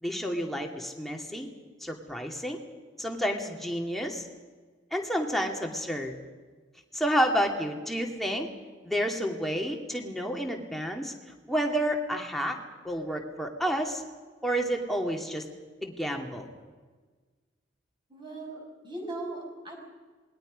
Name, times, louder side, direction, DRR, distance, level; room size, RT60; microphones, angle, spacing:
voice 1, 0.0-1.5 1.8-2.6 3.0-4.2 4.9-6.1 6.9-8.5 8.8-11.1 11.5-12.6 12.8-14.0 14.4-15.5 15.8-16.5, equal, ahead, 1 dB, 2.4 m, -30 dB
voice 2, 18.1-19.7, right 2 dB, 25° right, -1 dB, 6.2 m, -38 dB
27.5 x 21.0 x 5.2 m, 1.4 s
head